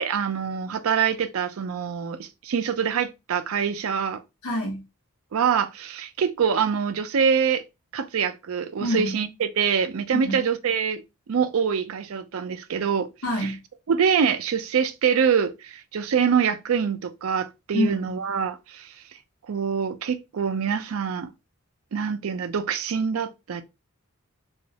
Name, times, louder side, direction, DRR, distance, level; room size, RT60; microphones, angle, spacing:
voice 1, 0.0-4.2 5.3-7.6 7.9-11.0 11.3-13.1 13.4-13.6 13.9-18.9 19.5-21.3 21.9-23.6, right 7 dB, 70° right, 0.4 m, -25 dB
voice 2, 4.4-4.8 8.8-9.1 10.1-10.4 13.2-13.6 17.7-18.1, left 1 dB, 85° left, 1.0 m, -26 dB
3.0 x 2.3 x 2.7 m
head